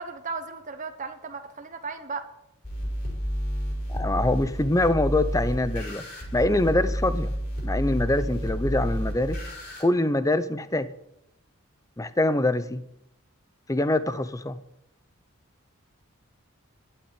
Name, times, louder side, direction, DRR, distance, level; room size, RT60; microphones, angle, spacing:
voice 1, 0.0-2.3, right 4 dB, 35° right, 6 dB, 1.1 m, -35 dB
sound 1, 2.6-9.8, equal, 45° left, 5.5 m, -30 dB
voice 2, 3.9-6.1 6.3-7.3 7.6-9.4 9.8-10.9 12.0-12.8 13.7-14.6, left 2 dB, 15° left, 13 dB, 0.6 m, -24 dB
11.5 x 8.9 x 9.1 m, 0.80 s
head